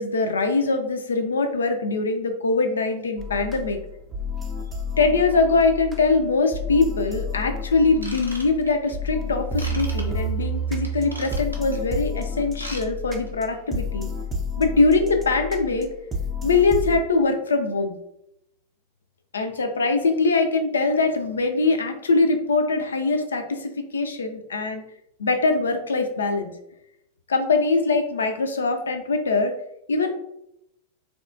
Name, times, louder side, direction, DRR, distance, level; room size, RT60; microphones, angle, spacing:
voice 1, 0.0-3.8 5.0-14.1 14.6-15.9 16.4-17.9 19.3-24.8 25.2-26.5 27.3-29.5 29.9-30.1, left 3 dB, 70° left, 6 dB, 0.3 m, -22 dB
sound 1, 3.2-17.0, left 1 dB, 15° right, 0.5 m, -30 dB
Ratchet pawl / Tools, 7.9-8.9 9.6-10.0 10.8-11.8 12.4-12.8 13.1-13.3 13.8-13.9, right 1 dB, 85° right, 0.5 m, -37 dB
3.4 x 2.3 x 2.5 m, 0.80 s
figure-of-eight pair, 90°, 0 cm